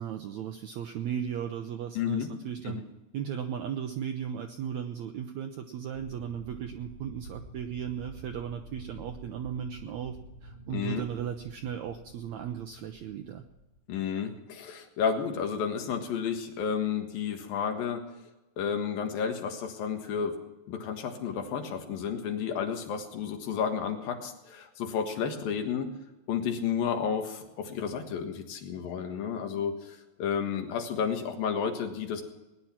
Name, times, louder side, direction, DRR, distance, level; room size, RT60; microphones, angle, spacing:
voice 1, 0.0-2.8 3.1-13.4, right 8 dB, 80° right, 6 dB, 1.6 m, -36 dB
voice 2, 2.0-2.3 2.6-2.8 10.7-11.0 13.9-18.0 18.6-20.3 20.7-25.9 26.3-32.2, left 7 dB, 75° left, 4 dB, 3.3 m, -31 dB
sound 1, 5.9-13.8, right 2 dB, 45° left, 2.4 m, -49 dB
19.5 x 10.5 x 5.9 m, 1.0 s
omnidirectional pair, 4.2 m